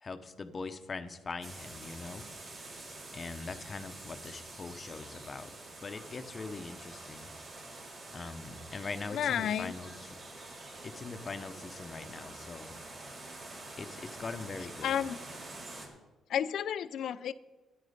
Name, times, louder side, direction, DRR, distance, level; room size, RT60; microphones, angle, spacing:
voice 1, 0.0-2.2 3.1-5.5 5.8-7.3 8.1-10.2 10.8-12.7 13.0-13.1 13.8-15.0, left 4 dB, 35° left, 9 dB, 0.9 m, -42 dB
sound 1, 1.4-15.9, right 2 dB, 45° right, 2.9 m, -47 dB
voice 2, 9.1-9.7 14.8-15.2 16.3-17.3, left 9 dB, 70° left, 16 dB, 0.4 m, -31 dB
12.5 x 9.8 x 5.2 m, 1.1 s
cardioid pair, 90°, 0 cm